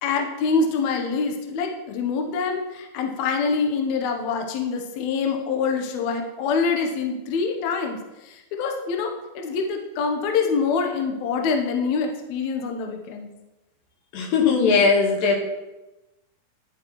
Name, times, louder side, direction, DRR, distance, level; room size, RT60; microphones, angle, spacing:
voice 1, 0.0-8.0 8.2-13.3, left 5 dB, 85° left, 3 dB, 1.6 m, -25 dB
voice 2, 14.1-15.4, left 5 dB, 70° left, 0 dB, 2.8 m, -19 dB
11.0 x 6.5 x 3.0 m, 1.0 s
omnidirectional pair, 4.5 m